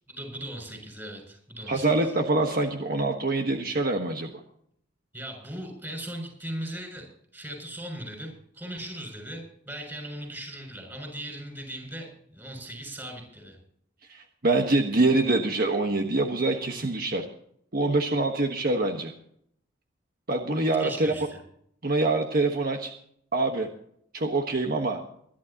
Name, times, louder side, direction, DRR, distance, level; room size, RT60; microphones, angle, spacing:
voice 1, 0.1-2.1 5.1-7.1 7.3-13.6 20.8-21.4, right 1 dB, 10° right, 3 dB, 6.9 m, -38 dB
voice 2, 1.7-4.3 14.1-17.2 17.7-19.1 20.3-21.1 21.8-22.9 23.3-23.7 24.1-25.0, right 2 dB, 55° right, 3 dB, 1.4 m, -25 dB
24.5 x 11.5 x 2.9 m, 0.67 s
head